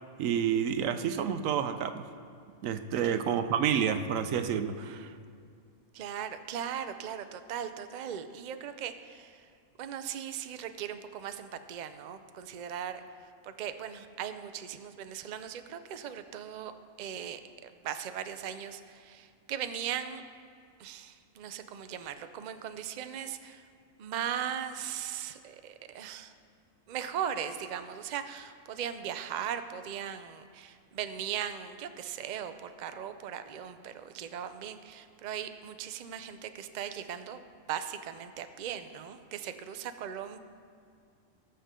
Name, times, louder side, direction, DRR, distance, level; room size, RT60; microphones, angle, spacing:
voice 1, 0.2-2.0 2.6-5.1, right 8 dB, 90° right, 10 dB, 1.0 m, -29 dB
voice 2, 5.9-9.4 9.8-16.7 17.0-20.2 20.8-23.6 24.0-26.3 26.9-37.4 37.7-40.4, right 9 dB, 50° right, 9 dB, 0.5 m, -38 dB
19.0 x 6.9 x 3.7 m, 2.3 s
omnidirectional pair, 1.4 m